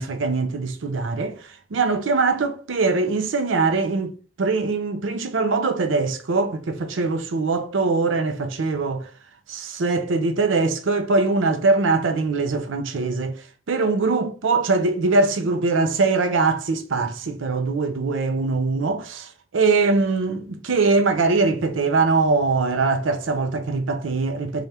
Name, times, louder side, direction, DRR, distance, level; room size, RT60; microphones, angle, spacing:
voice 1, 0.0-9.1 9.5-24.7, right 3 dB, 85° right, 0.5 m, -22 dB
3.4 x 2.3 x 4.1 m
head